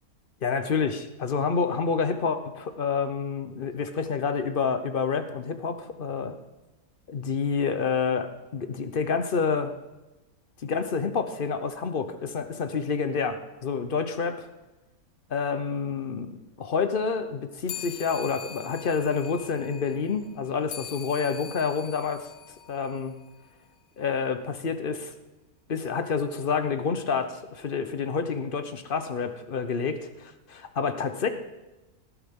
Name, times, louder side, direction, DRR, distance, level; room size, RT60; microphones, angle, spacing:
voice 1, 0.4-6.4 7.1-9.7 10.6-14.5 15.3-22.3 22.7-23.1 24.0-25.1 25.7-31.3, left 5 dB, 45° left, 9 dB, 0.8 m, -28 dB
sound 1, 17.7-23.5, left 9 dB, 80° left, 1.2 m, -43 dB
18.5 x 12.0 x 3.6 m, 1.1 s
omnidirectional pair, 1.6 m